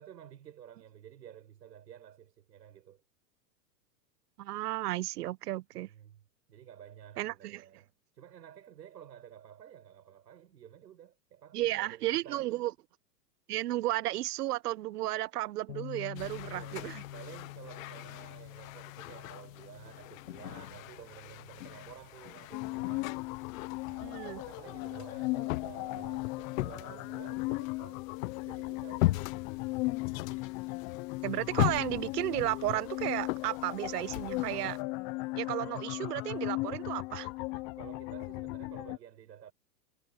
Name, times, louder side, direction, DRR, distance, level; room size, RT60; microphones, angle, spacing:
voice 1, 0.0-3.0 5.8-6.2 6.5-7.9 8.1-12.6 16.4-23.2 23.8-28.0 28.4-29.2 37.8-39.5, right 10 dB, 90° right, 7.5 m, -52 dB
voice 2, 4.4-5.9 7.2-7.6 11.5-12.7 13.5-17.0 24.0-24.4 31.2-34.8 35.4-37.3, right 16 dB, 65° right, 1.2 m, -33 dB
Bass guitar, 15.7-21.9, left 13 dB, 70° left, 7.5 m, -48 dB
sound 1, 16.2-34.8, left 18 dB, 55° left, 1.0 m, -39 dB
sound 2, 22.5-39.0, left 23 dB, 25° left, 0.6 m, -37 dB
supercardioid pair, 145°, 50 cm